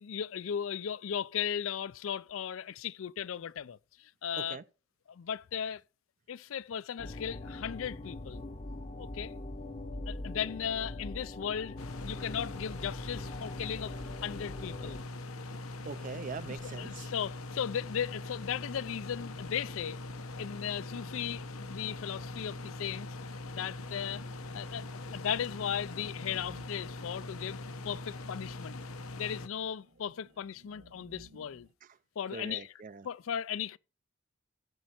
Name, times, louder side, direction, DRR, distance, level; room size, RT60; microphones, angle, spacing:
voice 1, 0.0-4.6 5.1-5.8 6.3-8.4 9.0-9.3 10.1-11.8 12.0-14.0 14.2-15.0 16.8-20.0 20.4-23.1 23.5-24.2 24.5-28.8 29.2-31.7 32.2-32.7 33.0-33.8, left 8 dB, 70° left, 0.4 m, -36 dB
sound 1, 7.0-15.0, left 2 dB, 35° left, 0.7 m, -42 dB
sound 2, 11.8-29.5, left 2 dB, 90° left, 1.0 m, -42 dB
sound 3, 13.3-31.7, equal, 70° right, 2.1 m, -61 dB
voice 2, 15.8-17.1 32.3-33.1, right 4 dB, 40° right, 0.4 m, -42 dB
14.5 x 6.3 x 4.3 m
head